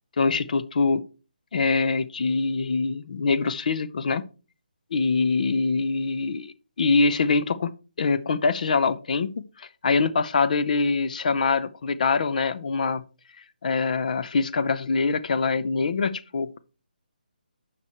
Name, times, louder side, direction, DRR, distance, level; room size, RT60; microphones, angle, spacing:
voice 1, 0.2-1.0 1.5-4.3 4.9-7.7 8.0-13.1 13.6-16.6, left 4 dB, 55° left, 0.7 m, -24 dB
8.2 x 5.9 x 4.3 m
figure-of-eight pair, 155°, 5 cm